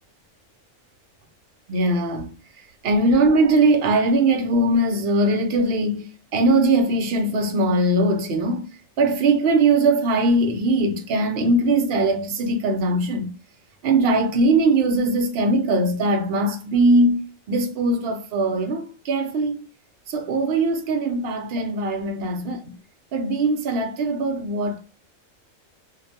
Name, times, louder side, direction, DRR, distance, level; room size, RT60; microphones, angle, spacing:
voice 1, 1.7-2.3 2.8-6.1 6.3-8.7 9.0-13.3 13.8-17.2 17.5-19.6 20.1-22.6 23.1-24.8, right 2 dB, 60° right, 0.7 m, -20 dB
2.5 x 2.1 x 2.7 m
omnidirectional pair, 1.4 m